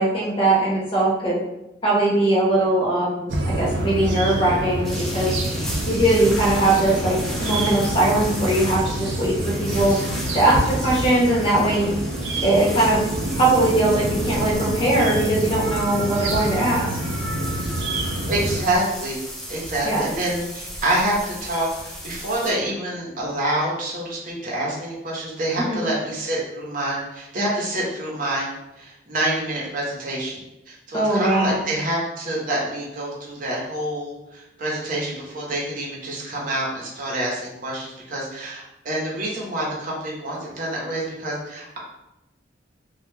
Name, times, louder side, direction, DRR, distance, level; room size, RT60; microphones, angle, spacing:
voice 1, 0.0-1.4 1.8-5.4 5.9-10.0 10.3-11.9 12.4-13.0 13.4-16.9 19.8-20.1 25.6-25.8 30.9-31.6, right 1 dB, 30° left, -6 dB, 0.8 m, -20 dB
sound 1, 3.3-18.6, right 1 dB, 75° right, 0.4 m, -27 dB
sound 2, 4.8-22.5, equal, ahead, 0.3 m, -35 dB
voice 2, 18.3-19.2 19.5-28.5 28.8-41.8, right 1 dB, 45° right, -4 dB, 0.7 m, -27 dB
2.2 x 2.1 x 3.2 m, 0.92 s
head